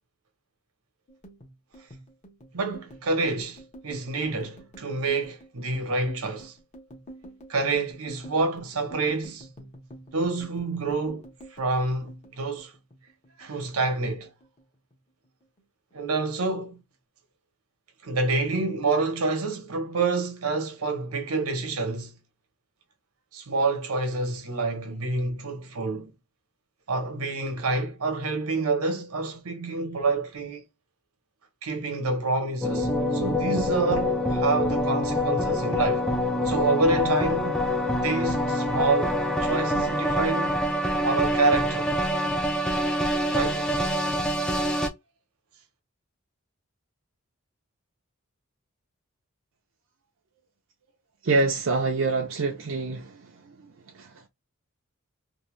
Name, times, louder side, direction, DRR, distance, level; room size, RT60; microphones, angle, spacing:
sound 1, 1.1-13.7 13.9-15.0 15.2-15.6 15.9-16.6, right 1 dB, 30° left, 0.8 m, -48 dB
voice 1, 2.5-6.5 7.5-9.5 10.1-11.2 11.5-12.7 13.4-14.3 15.9-16.8 18.0-22.2 23.3-26.1 26.9-30.6 31.6-36.1 36.4-37.6 38.0-40.6 41.0-41.9 43.3-43.6, right 3 dB, 80° right, 0.9 m, -27 dB
sound 2, 32.6-44.9, left 1 dB, 5° left, 0.4 m, -25 dB
voice 2, 51.2-53.2 53.9-54.3, right 3 dB, 60° right, 0.5 m, -26 dB
2.7 x 2.1 x 3.1 m
head